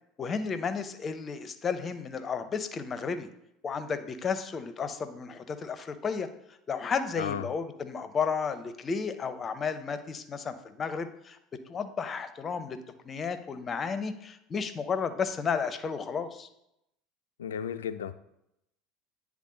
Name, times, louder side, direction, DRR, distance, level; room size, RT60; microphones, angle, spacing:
voice 1, 0.2-3.3 3.6-6.3 6.7-11.4 11.7-12.8 13.0-16.5, left 5 dB, 30° left, 10 dB, 0.6 m, -33 dB
voice 2, 17.4-18.1, left 8 dB, 75° left, 12 dB, 0.3 m, -33 dB
9.2 x 3.5 x 3.8 m, 0.81 s
figure-of-eight pair, 70°, 0 cm